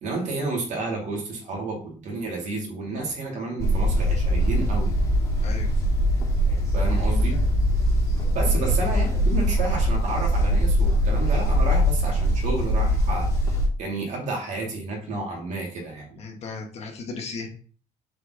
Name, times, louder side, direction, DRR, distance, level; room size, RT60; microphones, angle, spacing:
voice 1, 0.0-4.9 6.7-7.4 8.3-16.2, right 3 dB, 50° right, -1 dB, 2.5 m, -31 dB
sound 1, 3.6-13.7, equal, 20° left, 1.9 m, -22 dB
voice 2, 16.2-17.5, left 4 dB, 45° left, 3 dB, 1.3 m, -36 dB
6.5 x 4.3 x 3.9 m, 0.42 s
cardioid pair, 165°, 15 cm